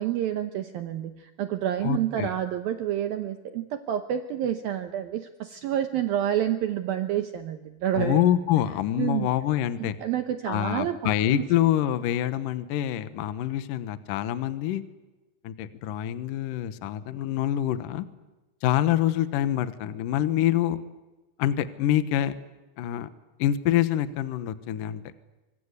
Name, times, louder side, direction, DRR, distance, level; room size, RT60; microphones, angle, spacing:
voice 1, 0.0-8.3 9.0-9.3 9.8-11.4, right 11 dB, 80° right, 8 dB, 2.1 m, -29 dB
voice 2, 1.8-2.3 8.0-10.0 10.5-14.8 15.4-18.1 18.6-20.8 21.4-22.4 22.8-23.1 23.4-25.2, left 12 dB, 80° left, 12 dB, 1.9 m, -26 dB
26.0 x 25.5 x 8.2 m, 1.1 s
omnidirectional pair, 5.6 m